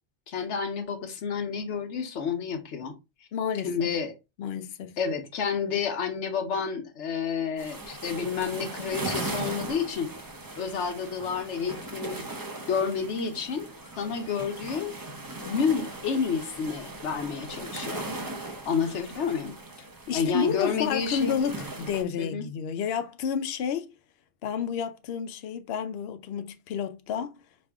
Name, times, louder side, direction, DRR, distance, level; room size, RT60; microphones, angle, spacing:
voice 1, 0.3-2.9 3.6-4.1 5.0-10.1 10.6-12.2 12.7-13.7 14.0-15.0 15.5-18.1 18.6-19.6 20.1-21.4 22.2-22.5, left 6 dB, 85° left, 1.2 m, -30 dB
voice 2, 3.3-3.9 4.4-5.0 20.1-23.9 24.4-27.3, left 7 dB, 65° left, 0.8 m, -30 dB
sound 1, 7.6-22.0, right 2 dB, 25° right, 0.6 m, -38 dB
5.2 x 2.5 x 3.5 m
omnidirectional pair, 1.2 m